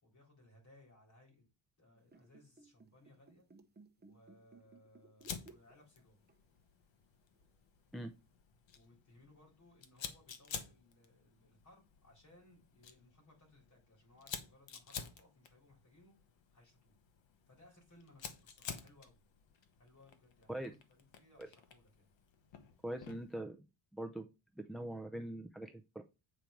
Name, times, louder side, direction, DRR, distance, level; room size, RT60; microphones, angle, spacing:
voice 1, 0.0-1.4 1.8-3.5 4.0-6.2 8.7-16.2 16.5-17.0 17.5-19.2 19.8-22.1, left 1 dB, 35° left, 0 dB, 4.1 m, -64 dB
sound 1, 2.0-6.0 6.3-6.5 7.3-7.4, right 3 dB, 20° right, 0.8 m, -60 dB
Fire, 5.2-23.4, left 7 dB, 65° left, 1.2 m, -51 dB
voice 2, 22.8-23.7 23.9-24.3 24.6-26.0, right 1 dB, ahead, 7 dB, 0.4 m, -42 dB
8.5 x 4.5 x 5.2 m, 0.27 s
wide cardioid pair, 170°, 47 cm